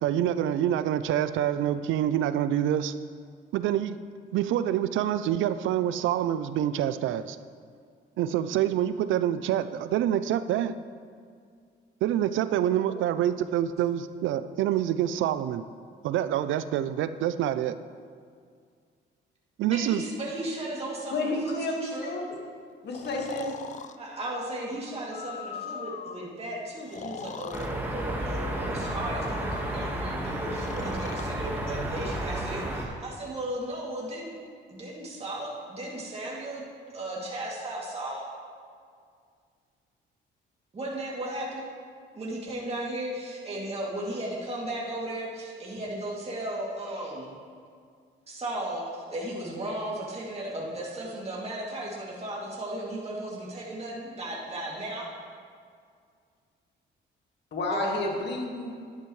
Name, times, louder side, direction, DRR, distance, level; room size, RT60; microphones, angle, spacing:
voice 1, 0.0-2.9 3.5-4.0 4.3-7.4 8.2-10.8 12.0-15.6 16.0-17.8 19.6-20.0, right 11 dB, 80° right, 13 dB, 0.4 m, -26 dB
voice 2, 19.7-22.1 24.0-34.4 34.7-36.6 36.9-38.3 40.7-41.7 42.1-47.4 48.3-55.1 57.7-57.9, right 1 dB, 30° right, -4 dB, 2.5 m, -35 dB
voice 3, 21.1-22.4 22.8-23.5 57.5-58.7, left 2 dB, 60° left, 0 dB, 1.8 m, -30 dB
Breathing, 22.9-24.0 25.0-26.3 26.8-27.7 28.7-29.9 30.6-31.4, left 7 dB, 40° left, 0.4 m, -41 dB
sound 1, 27.5-32.9, right 1 dB, 10° right, 1.5 m, -32 dB
11.0 x 10.5 x 3.2 m, 2.1 s
cardioid pair, 90°, 20 cm